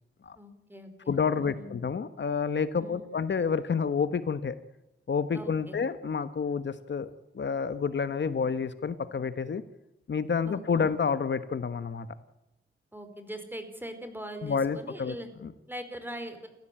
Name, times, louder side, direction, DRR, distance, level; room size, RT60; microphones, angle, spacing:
voice 1, 0.4-1.8 2.8-3.2 5.3-5.8 10.5-10.9 12.9-15.3 15.7-16.5, right 1 dB, 10° right, 8 dB, 4.5 m, -42 dB
voice 2, 1.1-4.6 5.1-7.1 7.3-9.6 10.1-12.1 14.4-15.1 15.4-15.5, left 6 dB, 60° left, 12 dB, 1.2 m, -29 dB
29.0 x 15.0 x 8.9 m, 0.94 s
wide cardioid pair, 115°, 21 cm